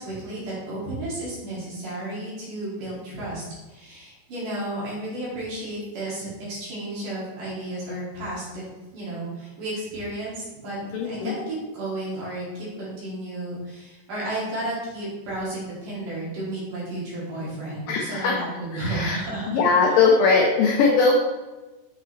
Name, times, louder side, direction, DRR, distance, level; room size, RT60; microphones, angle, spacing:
voice 1, 0.0-8.6 8.9-19.6, right 1 dB, 55° right, -7 dB, 3.9 m, -33 dB
voice 2, 10.9-11.4 17.9-18.4 18.7-19.2 19.5-21.2, left 4 dB, 90° left, -1 dB, 1.9 m, -20 dB
8.0 x 5.7 x 3.2 m, 1.1 s
omnidirectional pair, 4.9 m